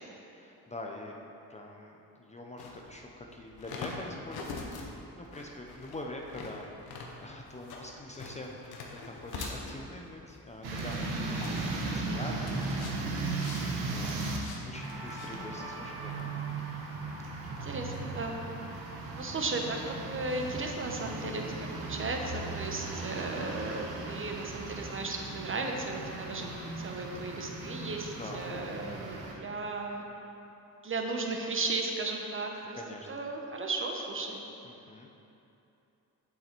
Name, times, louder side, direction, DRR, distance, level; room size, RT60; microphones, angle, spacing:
voice 1, 0.3-1.2 1.5-12.7 13.0-13.6 13.9-14.1 14.6-16.5 17.6-17.7 22.8-22.9 28.1-28.5 32.5-33.2 34.6-35.1, left 1 dB, 20° left, 0 dB, 0.6 m, -45 dB
sound 1, 2.6-16.2, left 4 dB, 75° left, 1.0 m, -45 dB
sound 2, 10.6-14.4 14.8-29.3, right 3 dB, 90° right, 1.1 m, -37 dB
voice 2, 11.9-12.3 17.5-18.4 19.1-21.4 21.8-26.5 26.8-30.0 30.8-32.8 33.1-34.4, right 3 dB, 35° right, 2 dB, 1.0 m, -35 dB
7.6 x 5.5 x 4.5 m, 2.9 s
cardioid pair, 75°, 37 cm